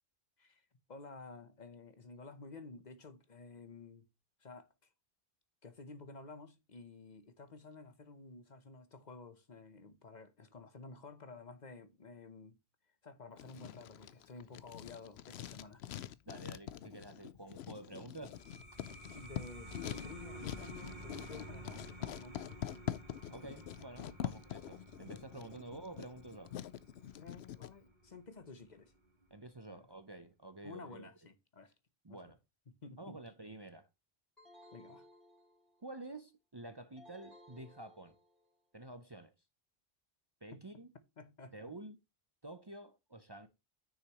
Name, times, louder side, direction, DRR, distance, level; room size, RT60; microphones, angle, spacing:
voice 1, 0.4-4.1 4.4-4.7 5.6-12.6 13.0-15.8 19.1-22.7 24.2-24.4 25.6-25.7 27.1-28.9 29.7-29.9 30.6-31.7 32.1-32.2 32.7-33.2 34.7-35.1 40.5-40.8 41.2-41.5, left 3 dB, 45° left, 1.0 m, -52 dB
Writing, 13.4-27.7, left 11 dB, 90° left, 0.9 m, -45 dB
voice 2, 16.3-18.4 23.3-26.5 29.3-31.1 32.0-32.4 33.0-33.9 35.8-38.2 38.7-39.3 40.4-40.9 41.5-42.0 42.4-43.5, right 2 dB, 25° right, 0.7 m, -49 dB
sound 1, 18.1-29.3, right 1 dB, 50° right, 1.8 m, -52 dB
sound 2, 34.4-35.9 37.0-38.5, left 1 dB, ahead, 3.8 m, -59 dB
9.7 x 6.2 x 3.0 m
omnidirectional pair, 1.0 m